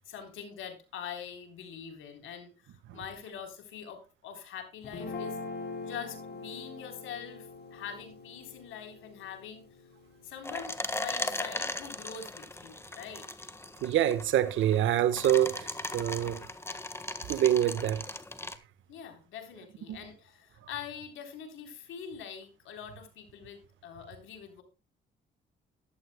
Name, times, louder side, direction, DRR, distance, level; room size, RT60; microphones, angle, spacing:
voice 1, 0.0-5.4 5.8-9.7 10.2-13.3 18.9-24.6, left 7 dB, 80° left, 3.8 m, -44 dB
Guitar, 4.8-11.2, left 3 dB, 55° left, 4.1 m, -43 dB
sound 1, 10.4-18.6, left 2 dB, 10° left, 1.5 m, -38 dB
voice 2, 13.8-16.4 17.3-18.0 19.9-20.0, right 11 dB, 80° right, 1.3 m, -26 dB
14.5 x 12.0 x 2.2 m
cardioid pair, 90°, 20 cm